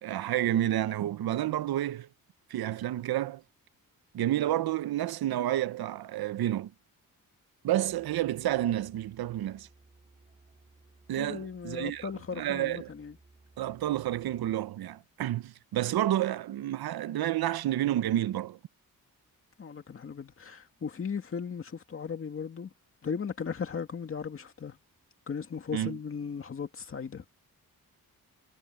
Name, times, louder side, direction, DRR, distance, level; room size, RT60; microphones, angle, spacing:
voice 1, 0.0-2.1 2.5-3.4 4.1-6.7 7.6-9.7 11.1-12.9 13.6-18.6 25.7-26.0, right 13 dB, 90° right, 0.8 m, -30 dB
Musical instrument, 7.8-14.7, right 3 dB, 20° right, 5.5 m, -60 dB
voice 2, 11.2-13.1 19.6-22.7 23.0-24.8 25.3-27.2, left 6 dB, 35° left, 2.3 m, -37 dB
wide cardioid pair, 175°, 36 cm